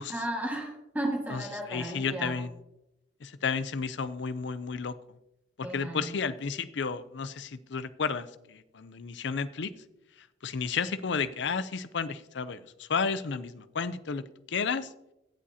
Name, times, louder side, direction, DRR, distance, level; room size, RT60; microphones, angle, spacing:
voice 1, 0.1-2.4 5.6-6.2, right 1 dB, 10° right, 0 dB, 1.7 m, -34 dB
voice 2, 1.7-2.5 3.2-4.9 5.6-9.7 10.4-14.9, left 5 dB, 65° left, 14 dB, 0.5 m, -32 dB
16.5 x 7.5 x 2.8 m, 0.90 s
head